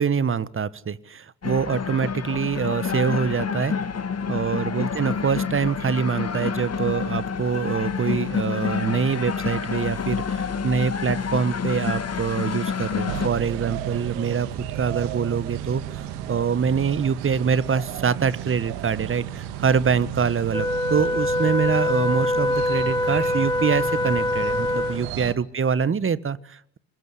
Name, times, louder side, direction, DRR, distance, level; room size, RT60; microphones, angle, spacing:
voice 1, 0.0-3.7 4.3-26.8, right 6 dB, 25° right, 18 dB, 1.5 m, -25 dB
sound 1, 1.4-13.3, left 6 dB, 30° left, 2.9 m, -28 dB
sound 2, 13.1-25.3, right 11 dB, 70° right, 2.7 m, -33 dB
Wind instrument woodwind instrument, 20.5-25.1, left 1 dB, 10° left, 3.2 m, -24 dB
26.5 x 21.0 x 8.3 m, 0.65 s
hypercardioid pair, 65°, 50 cm